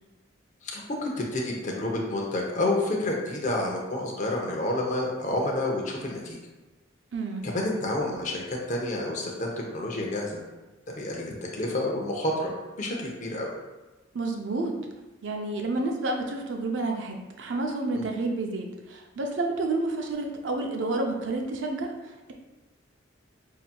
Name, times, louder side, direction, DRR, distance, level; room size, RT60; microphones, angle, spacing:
voice 1, 0.6-6.4 7.4-10.4 11.0-12.5 12.8-13.5 17.9-18.0, left 1 dB, 40° left, -1 dB, 0.7 m, -29 dB
voice 2, 7.1-7.5 14.1-14.7 15.2-22.3, right 2 dB, 70° right, 2 dB, 0.5 m, -30 dB
5.6 x 2.8 x 2.2 m, 1.1 s
head